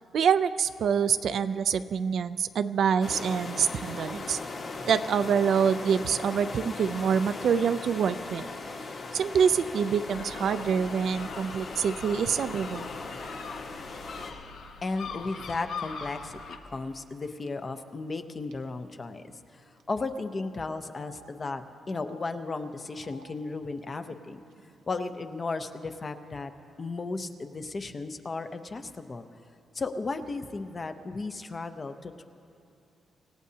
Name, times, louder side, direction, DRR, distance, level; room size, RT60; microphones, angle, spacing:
voice 1, 0.1-4.4 4.9-8.5 9.1-12.9, right 7 dB, 55° right, 12 dB, 0.4 m, -26 dB
sound 1, 3.0-14.3, left 3 dB, 45° left, 1.5 m, -39 dB
sound 2, 10.1-16.6, left 5 dB, 70° left, 0.9 m, -42 dB
voice 2, 14.8-24.4 24.9-26.5 26.8-29.3 29.7-32.2, left 3 dB, 25° left, 8 dB, 0.6 m, -35 dB
Telephone, 17.0-17.2 17.5-17.6 18.5-18.6 18.9-19.0 19.8-20.1 20.9-21.2 22.0-22.3 22.9-23.2 24.0-24.2 24.4-25.1, right 2 dB, 85° right, 0.8 m, -54 dB
26.5 x 16.5 x 2.8 m, 2.6 s
wide cardioid pair, 175°, 0 cm